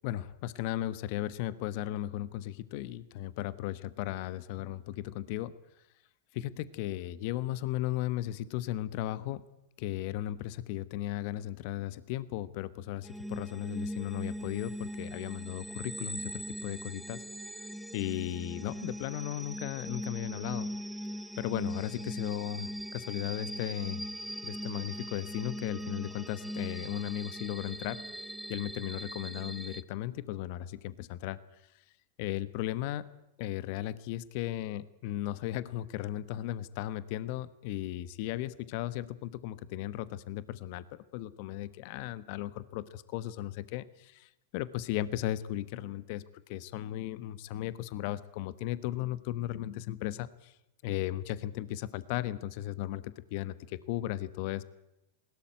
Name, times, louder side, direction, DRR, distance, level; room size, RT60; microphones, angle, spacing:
voice 1, 0.0-5.5 6.3-9.4 9.8-17.2 17.9-20.7 21.4-24.0 24.4-28.0 28.5-31.4 32.2-33.0 33.4-40.8 41.1-46.2 46.5-50.5 50.8-54.6, left 14 dB, 55° left, 16 dB, 1.2 m, -36 dB
sound 1, 13.0-29.8, equal, 5° right, 1.3 m, -40 dB
20.5 x 18.0 x 9.3 m, 0.90 s
hypercardioid pair, 110°, 0 cm